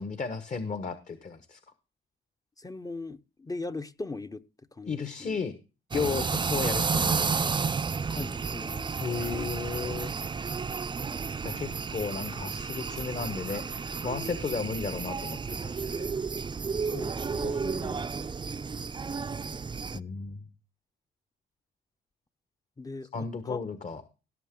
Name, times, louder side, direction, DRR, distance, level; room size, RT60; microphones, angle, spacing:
voice 1, 0.0-1.6 4.9-5.5 5.9-7.5 9.0-10.1 11.4-16.1 17.3-18.1 19.9-20.5 23.1-24.0, left 5 dB, 40° left, 11 dB, 1.3 m, -34 dB
voice 2, 2.6-4.4 4.7-5.4 8.1-8.9 9.3-9.5 16.8-17.6 19.5-20.0 22.8-23.6, left 3 dB, 20° left, 11 dB, 0.7 m, -40 dB
sound 1, 5.9-20.0, right 5 dB, 25° right, 0.5 m, -32 dB
17.5 x 6.7 x 3.7 m, 0.32 s
cardioid pair, 90°, 20 cm